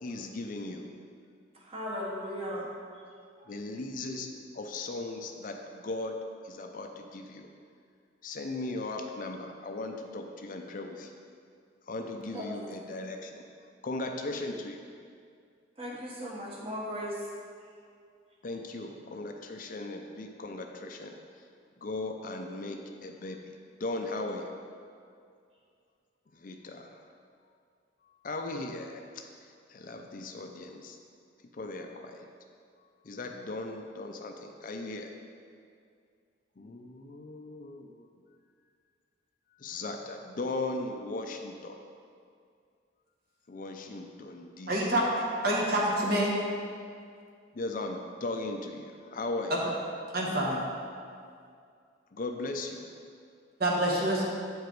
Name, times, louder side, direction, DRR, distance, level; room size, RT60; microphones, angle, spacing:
voice 1, 0.0-0.9 3.5-4.3 4.5-6.2 6.4-7.5 8.2-11.1 11.9-13.4 13.8-14.8 18.4-21.2 21.8-23.4 23.8-24.5 26.3-27.1 28.2-29.2 29.7-31.0 31.5-32.3 33.0-35.1 36.6-38.1 39.6-41.8 43.5-44.9 47.5-49.5 52.1-52.9, left 2 dB, 45° left, 4 dB, 0.5 m, -37 dB
voice 2, 1.6-2.7 3.4-3.5 12.3-13.0 15.8-17.3, equal, 30° right, -4 dB, 1.2 m, -37 dB
voice 3, 44.7-45.1 45.4-46.4 49.5-49.6 50.1-50.7 53.6-54.3, right 1 dB, 50° right, -2 dB, 1.2 m, -27 dB
8.0 x 5.0 x 4.6 m, 2.3 s
head